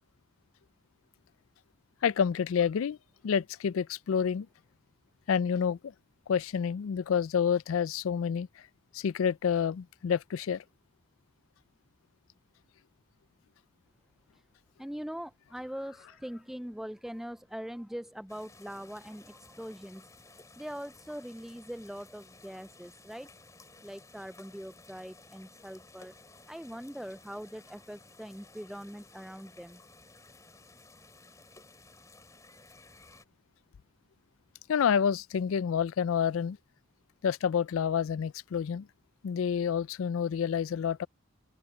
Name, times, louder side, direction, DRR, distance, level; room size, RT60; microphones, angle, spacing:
voice 1, 2.0-3.0 3.2-4.5 5.3-5.8 6.3-8.5 8.9-10.6 34.7-36.6 37.2-38.9 39.2-41.1, left 7 dB, 90° left, 0.4 m, -28 dB
voice 2, 14.8-20.1 20.6-23.3 23.8-26.2 26.5-29.8, equal, ahead, 0.4 m, -42 dB
sound 1, 18.3-33.2, left 3 dB, 15° left, 2.7 m, -56 dB
open air
head